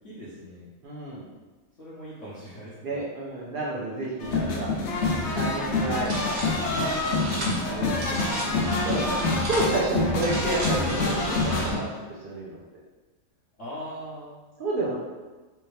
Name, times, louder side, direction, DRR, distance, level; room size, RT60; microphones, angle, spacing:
voice 1, 0.0-0.7 1.7-3.0 4.2-4.4 7.5-8.2 13.6-14.4, equal, 55° left, -9 dB, 1.1 m, -42 dB
voice 2, 0.8-1.3 2.8-4.7 5.2-6.3 6.7-7.0 7.6-11.9 12.2-12.6 14.6-15.0, right 2 dB, 75° right, -7 dB, 0.4 m, -30 dB
sound 1, 4.2-11.8, left 3 dB, 75° left, 0.6 m, -26 dB
sound 2, 5.9-11.7, right 1 dB, 55° right, 1.0 m, -34 dB
3.4 x 2.8 x 3.1 m, 1.3 s
omnidirectional pair, 1.7 m